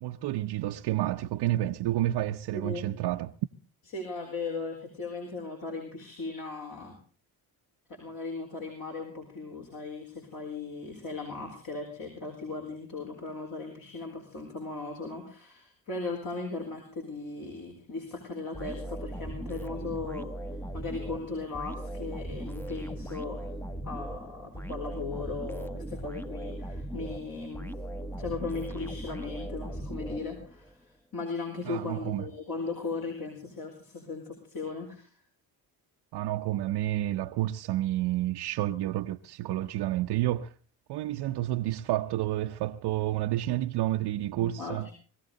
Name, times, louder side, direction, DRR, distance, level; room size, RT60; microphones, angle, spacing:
voice 1, 0.0-3.3 31.7-32.3 36.1-40.5 40.9-44.9, right 14 dB, 65° right, 0.7 m, -30 dB
voice 2, 2.5-2.9 3.9-7.0 7.9-20.3 20.7-23.5 23.8-27.8 28.2-35.1 44.4-44.9, left 3 dB, 50° left, 4.5 m, -37 dB
sound 1, 18.5-30.7, right 1 dB, 5° left, 0.8 m, -38 dB
20.5 x 15.0 x 3.9 m
supercardioid pair, 65°, 44 cm